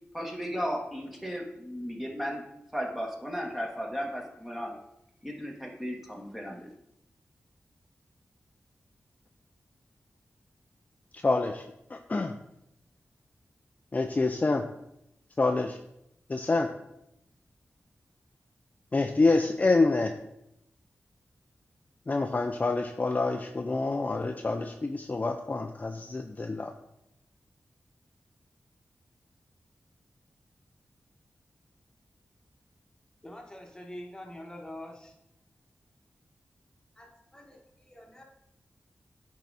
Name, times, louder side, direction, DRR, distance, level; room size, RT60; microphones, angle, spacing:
voice 1, 0.1-2.4 2.7-4.7 5.2-6.7, equal, 5° right, 0 dB, 1.6 m, -35 dB
voice 2, 11.1-11.6 11.9-12.3 13.9-14.6 15.4-15.8 16.3-16.7 18.9-20.1 22.1-26.7, left 3 dB, 35° left, 5 dB, 0.5 m, -27 dB
voice 3, 33.2-35.1 37.0-38.2, left 1 dB, 15° left, 1 dB, 1.5 m, -45 dB
9.0 x 4.8 x 4.0 m, 0.81 s
wide cardioid pair, 75°, 5 cm